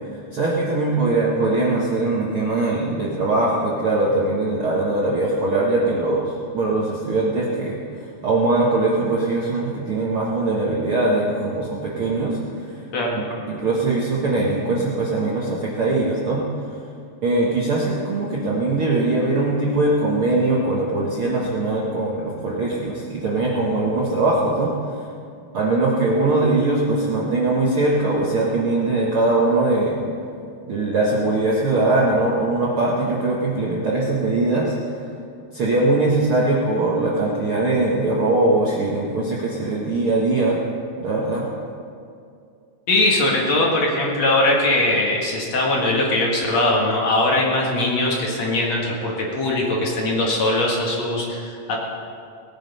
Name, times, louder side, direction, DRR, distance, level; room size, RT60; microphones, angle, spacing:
voice 1, 0.3-7.8 8.2-12.8 13.1-16.4 17.2-24.7 25.5-30.0 30.7-34.7 35.5-40.6 41.0-41.4, right 2 dB, 55° right, -4 dB, 1.5 m, -21 dB
voice 2, 42.9-51.8, left 2 dB, 50° left, -2 dB, 2.6 m, -21 dB
19.0 x 9.4 x 5.4 m, 2.4 s
omnidirectional pair, 4.2 m